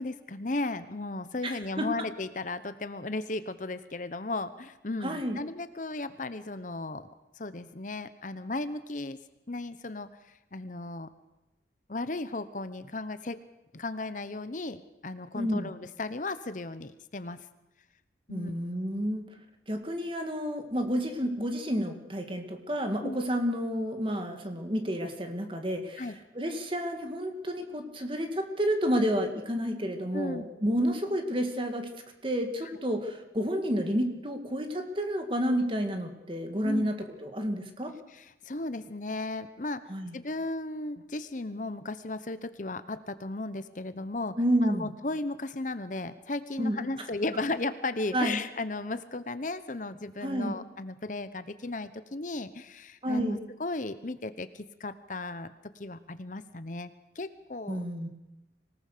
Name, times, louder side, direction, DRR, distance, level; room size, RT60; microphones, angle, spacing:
voice 1, 0.0-7.1 7.4-9.2 9.5-11.1 11.9-13.4 13.7-17.4 18.3-18.6 23.0-23.2 26.0-26.2 30.1-30.5 32.6-32.7 36.6-36.9 38.1-39.8 40.1-57.8, left 2 dB, 45° left, 12 dB, 0.9 m, -35 dB
voice 2, 1.4-1.9 5.0-5.4 15.3-15.7 18.3-19.2 19.7-31.9 32.2-37.9 39.9-40.1 44.4-44.9 46.6-46.9 48.1-48.4 50.2-50.6 53.0-53.4 57.7-58.1, equal, 30° right, 5 dB, 2.4 m, -30 dB
25.0 x 18.5 x 6.8 m, 0.99 s
head